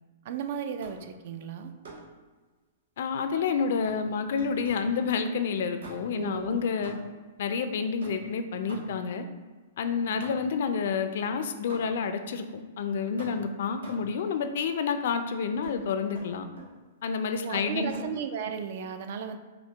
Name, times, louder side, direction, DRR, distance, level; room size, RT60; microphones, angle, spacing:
voice 1, 0.2-1.7 6.1-6.6 10.1-10.3 17.4-19.4, right 7 dB, 55° right, 8 dB, 0.3 m, -35 dB
sound 1, 0.8-1.2 1.8-2.2 3.8-5.0 5.8-6.3 6.8-7.3 8.0-9.2 10.2-10.7 11.7-12.2 13.2-14.2 15.6-15.8 16.1-16.8 17.9-18.2, right 2 dB, 85° right, 1.2 m, -47 dB
voice 2, 3.0-6.9 7.4-9.3 9.8-16.4 17.0-17.9, left 5 dB, 65° left, 8 dB, 0.3 m, -29 dB
4.5 x 2.1 x 3.4 m, 1.3 s
hypercardioid pair, 150°, 0 cm